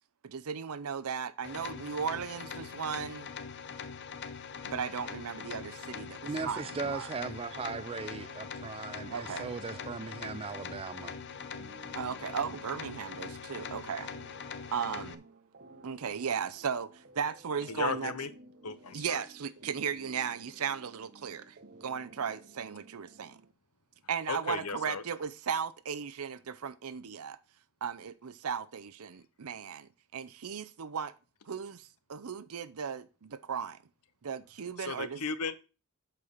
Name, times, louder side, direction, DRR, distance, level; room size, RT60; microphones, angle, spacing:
voice 1, 0.2-3.3 4.6-7.1 9.1-9.5 11.9-14.1 14.7-15.2 15.8-18.1 18.9-21.6 21.8-23.4 24.1-27.4 27.8-31.1 31.5-33.8 34.2-35.2, right 7 dB, 75° right, 0.6 m, -36 dB
sound 1, 1.4-15.1, left 6 dB, 50° left, 0.8 m, -43 dB
voice 2, 6.2-11.1, right 5 dB, 25° right, 0.3 m, -38 dB
sound 2, 7.5-23.5, right 2 dB, 45° right, 0.9 m, -55 dB
voice 3, 17.7-18.3 18.6-19.2 24.3-25.0 34.8-35.6, left 5 dB, 80° left, 0.9 m, -35 dB
8.6 x 4.6 x 6.5 m
head